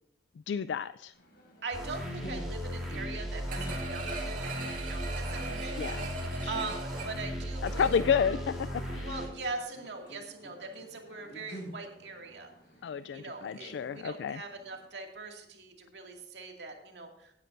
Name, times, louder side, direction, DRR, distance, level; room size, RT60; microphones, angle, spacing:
voice 1, 0.5-1.1 5.8-6.0 6.4-6.5 7.6-8.5 8.9-9.1 12.8-14.4, left 7 dB, 80° left, 14 dB, 0.3 m, -30 dB
sound 1, 1.1-14.9, equal, 60° left, 4.7 m, -51 dB
voice 2, 1.6-7.9 9.0-12.5 13.1-17.3, right 3 dB, 75° right, 2 dB, 2.3 m, -41 dB
sound 2, 1.7-9.3, equal, ahead, 3.4 m, -37 dB
sound 3, 3.5-8.3 8.7-8.8, right 3 dB, 50° right, 2.3 m, -40 dB
17.0 x 9.8 x 2.6 m, 0.78 s
head